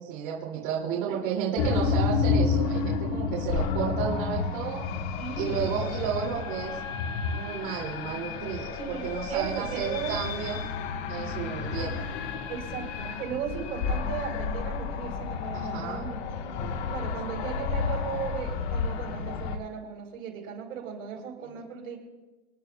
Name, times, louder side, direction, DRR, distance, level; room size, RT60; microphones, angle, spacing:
voice 1, 0.0-4.8 5.4-6.8 7.3-10.6 11.1-12.0 15.5-16.1 21.6-21.7, right 8 dB, 45° right, -3 dB, 2.5 m, -32 dB
sound 1, 1.6-19.6, left 5 dB, 50° left, 1.3 m, -30 dB
voice 2, 5.2-5.8 8.8-10.2 12.5-16.6 16.9-22.0, right 7 dB, 75° right, 0 dB, 4.6 m, -37 dB
26.0 x 11.0 x 2.3 m, 1.2 s
supercardioid pair, 145°, 41 cm